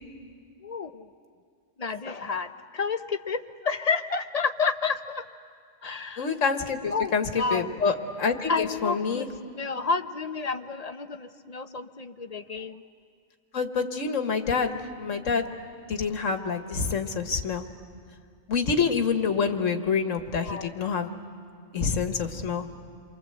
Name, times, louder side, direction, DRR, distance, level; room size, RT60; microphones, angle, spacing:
voice 1, 0.6-1.1 1.8-5.3 5.8-6.3 6.9-7.8 8.5-12.8 20.4-20.7, left 4 dB, 40° left, 9 dB, 0.7 m, -30 dB
voice 2, 6.2-7.2 7.5-9.3 13.5-15.5 15.9-17.6 18.5-21.1 21.7-22.7, left 5 dB, 85° left, 6 dB, 1.7 m, -27 dB
28.5 x 24.0 x 7.9 m, 2.2 s
omnidirectional pair, 1.3 m